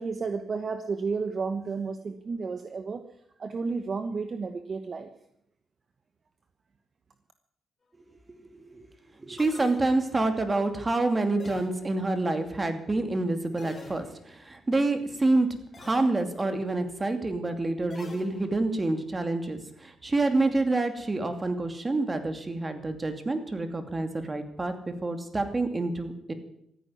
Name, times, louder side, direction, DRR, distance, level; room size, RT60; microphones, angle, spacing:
voice 1, 0.0-3.0 3.4-5.1, right 4 dB, 45° right, 8 dB, 1.2 m, -32 dB
voice 2, 8.5-8.9 9.2-15.5 15.8-26.3, right 2 dB, 25° right, 7 dB, 2.6 m, -27 dB
sound 1, 9.4-10.3 11.4-12.1 13.6-14.4 15.7-16.3 17.9-18.8, left 3 dB, 35° left, 3.3 m, -47 dB
14.5 x 9.4 x 9.6 m, 0.73 s
cardioid pair, 80°, 0 cm